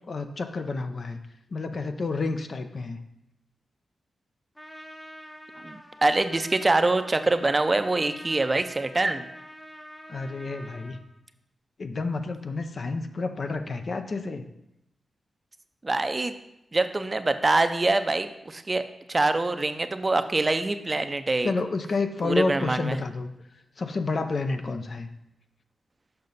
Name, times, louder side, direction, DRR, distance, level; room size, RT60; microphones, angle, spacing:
voice 1, 0.1-1.2 1.5-3.0 10.1-11.0 11.8-14.5 21.4-23.3 23.8-25.1, left 3 dB, 55° left, 7 dB, 0.6 m, -30 dB
Trumpet, 4.5-11.0, equal, 10° left, 0.8 m, -45 dB
voice 2, 5.6-9.3 15.8-16.4 16.7-18.8 19.1-21.5 22.2-23.0, right 2 dB, 30° right, 9 dB, 0.5 m, -24 dB
6.7 x 5.5 x 4.0 m, 0.85 s
cardioid pair, 60°, 0 cm